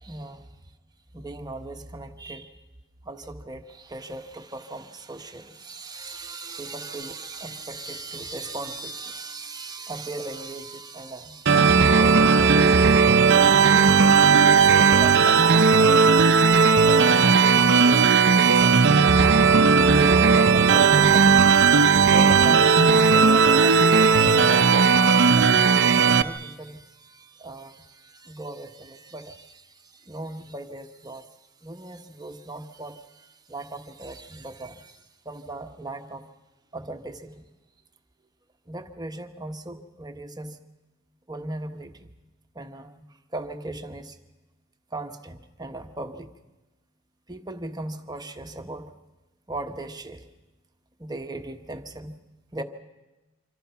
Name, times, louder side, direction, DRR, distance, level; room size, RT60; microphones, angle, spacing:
voice 1, 0.0-0.6 1.1-2.6 3.0-11.3 12.0-31.2 31.6-35.0 35.2-36.3 36.7-37.4 38.7-40.6 41.3-42.1 42.5-44.2 44.9-46.3 47.3-48.9 49.5-50.2 51.0-52.2 52.5-52.6, right 2 dB, 20° right, 6 dB, 1.3 m, -38 dB
sound 1, 11.5-26.2, right 5 dB, 60° right, 0.8 m, -16 dB
26.0 x 26.0 x 5.8 m, 1.1 s
head